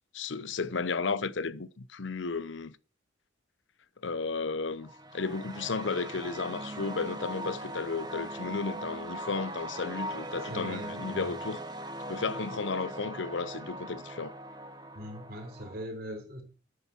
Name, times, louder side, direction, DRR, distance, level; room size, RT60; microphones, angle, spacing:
voice 1, 0.1-2.8 4.0-11.6 12.1-14.3, left 4 dB, 75° left, 0.7 m, -33 dB
sound 1, 4.8-15.8, right 1 dB, 20° right, 1.2 m, -40 dB
voice 2, 10.5-11.3 15.0-16.4, equal, 50° right, 3.9 m, -40 dB
10.0 x 8.2 x 5.8 m
head